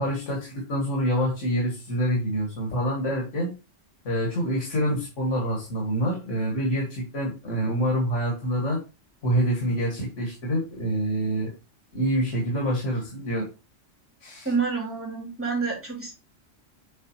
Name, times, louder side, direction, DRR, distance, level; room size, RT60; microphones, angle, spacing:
voice 1, 0.0-3.5 4.0-8.8 9.2-11.5 11.9-13.5 14.2-14.5, equal, 75° left, -2 dB, 2.3 m, -26 dB
voice 2, 14.4-16.1, right 5 dB, 10° right, -3 dB, 2.9 m, -28 dB
8.0 x 4.1 x 3.1 m, 0.29 s
omnidirectional pair, 1.3 m